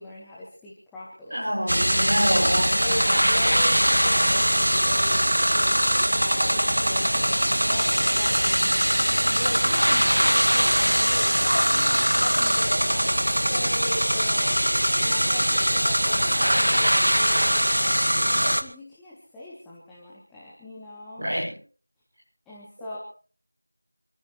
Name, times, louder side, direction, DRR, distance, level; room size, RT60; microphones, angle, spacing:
voice 1, 0.0-1.5 2.8-7.2 7.7-21.3 22.5-23.0, left 1 dB, ahead, -7 dB, 0.6 m, -40 dB
voice 2, 1.3-2.8 21.2-21.5, equal, 20° right, -6 dB, 7.3 m, -26 dB
sound 1, 1.7-18.6, equal, 60° right, 1.9 m, -21 dB
27.5 x 14.0 x 3.1 m, 0.40 s
figure-of-eight pair, 180°, 0 cm